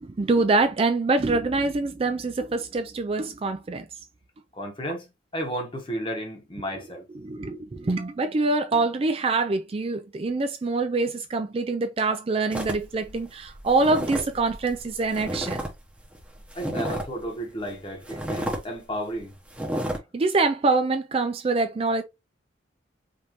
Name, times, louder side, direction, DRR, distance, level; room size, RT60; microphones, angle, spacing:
voice 1, 0.0-3.9 7.2-15.6 20.1-22.0, right 3 dB, 30° right, 0.3 m, -25 dB
voice 2, 4.5-5.1 5.3-7.1 16.5-19.4, equal, 25° left, 1.2 m, -33 dB
sound 1, 12.5-15.7 16.0-17.2 17.6-17.7 18.1-18.6 19.0-19.2 19.5-20.0, right 1 dB, 5° right, 1.0 m, -32 dB
5.2 x 2.7 x 2.9 m
head